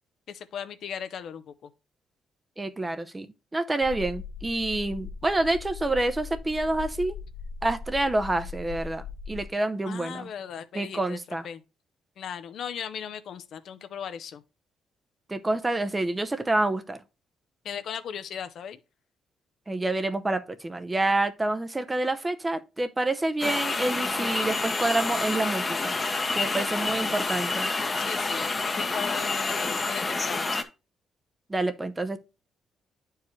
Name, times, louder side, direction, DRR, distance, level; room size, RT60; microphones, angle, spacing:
voice 1, 0.3-1.7 9.9-11.6 12.2-14.4 17.6-18.8 26.6-27.2 28.0-30.5, left 8 dB, 65° left, 0.7 m, -38 dB
voice 2, 2.6-3.3 3.5-7.2 7.6-10.3 10.7-11.5 15.3-17.0 19.7-25.9 26.3-27.7 31.5-32.2, right 2 dB, 20° right, 0.7 m, -28 dB
sound 1, 3.8-9.5, left 5 dB, 45° left, 1.5 m, -39 dB
sound 2, 23.4-30.6, left 3 dB, 25° left, 0.9 m, -28 dB
9.3 x 4.7 x 3.1 m
cardioid pair, 90°, 0 cm